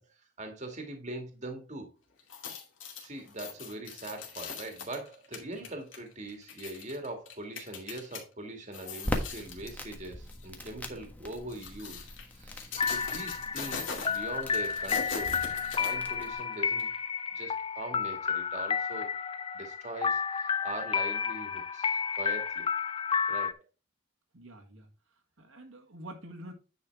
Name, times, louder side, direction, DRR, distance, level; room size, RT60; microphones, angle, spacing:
voice 1, 0.0-1.9 3.0-15.4 15.7-16.9 17.3-19.1 19.5-22.7 23.3-23.7, right 2 dB, 35° right, 2.0 m, -42 dB
sound 1, 2.2-8.2 8.6-9.8 10.3-10.5 11.3-16.4 16.8-16.9, left 5 dB, 65° left, 2.4 m, -41 dB
Crackle, 9.0-16.3, left 1 dB, 10° left, 1.4 m, -41 dB
sound 2, 12.8-23.5, left 6 dB, 25° left, 0.4 m, -31 dB
voice 2, 24.3-24.9 25.4-26.5, right 1 dB, 70° right, 1.8 m, -47 dB
9.7 x 5.7 x 3.5 m
head